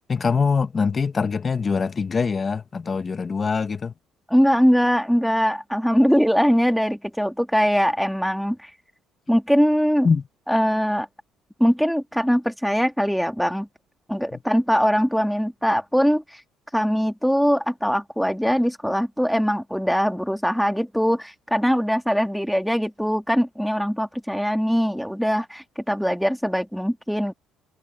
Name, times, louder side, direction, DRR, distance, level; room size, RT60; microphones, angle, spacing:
voice 1, 0.1-3.9 10.0-10.2, left 5 dB, 30° left, 1.3 m, -23 dB
voice 2, 4.3-8.7 9.3-10.1 10.5-11.1 11.6-13.7 14.1-16.4 16.7-27.3, equal, ahead, 1.9 m, -21 dB
cardioid pair, 120°, 0 cm